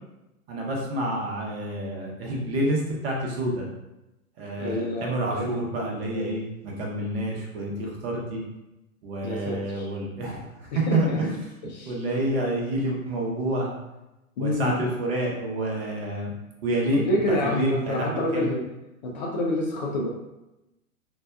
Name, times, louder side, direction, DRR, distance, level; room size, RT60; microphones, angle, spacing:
voice 1, 0.5-3.6 4.4-8.4 9.0-11.3 11.8-13.7 14.4-16.3 16.6-18.5, right 1 dB, 45° right, -1 dB, 0.9 m, -28 dB
voice 2, 4.6-5.8 9.2-9.9 10.7-11.3 11.6-12.0 14.4-14.8 16.9-18.6 19.0-20.1, left 1 dB, 35° left, -2 dB, 0.4 m, -28 dB
4.2 x 2.1 x 2.3 m, 0.95 s
figure-of-eight pair, 105°, 42 cm